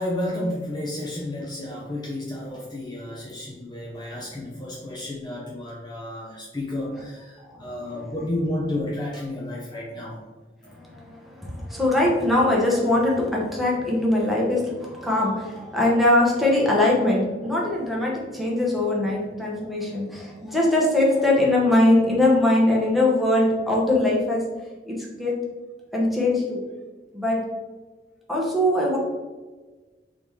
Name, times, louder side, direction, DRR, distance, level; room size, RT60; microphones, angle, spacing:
voice 1, 0.0-10.2, left 1 dB, 25° left, -4 dB, 0.6 m, -31 dB
voice 2, 7.5-8.2 10.6-24.4 24.9-25.3 25.9-26.6 27.1-27.4 28.3-29.0, left 1 dB, ahead, -4 dB, 1.0 m, -22 dB
4.0 x 3.1 x 3.5 m, 1.3 s
head